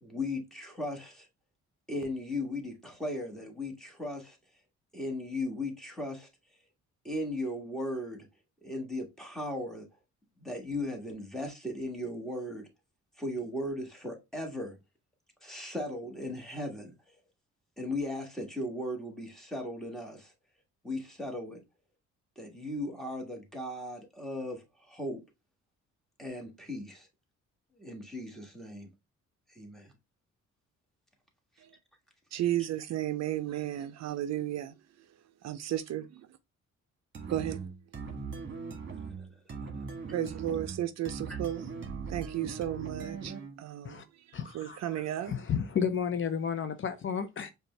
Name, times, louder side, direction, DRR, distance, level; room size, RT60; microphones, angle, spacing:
voice 1, 0.0-1.3 1.9-4.4 4.9-6.3 7.0-8.3 8.6-9.9 10.4-12.7 13.2-14.8 15.4-16.9 17.8-20.3 20.8-21.6 22.4-25.2 26.2-27.1 27.8-28.9 29.5-29.9 39.2-39.3 41.3-41.4, left 1 dB, ahead, 1.5 m, -37 dB
voice 2, 32.3-34.7 35.4-36.3 37.3-37.6 40.1-45.4, right 12 dB, 60° right, 0.5 m, -34 dB
sound 1, 37.1-43.6, right 5 dB, 40° right, 1.2 m, -40 dB
voice 3, 44.3-47.5, left 7 dB, 40° left, 0.5 m, -32 dB
5.0 x 2.4 x 3.2 m
cardioid pair, 90°, 30 cm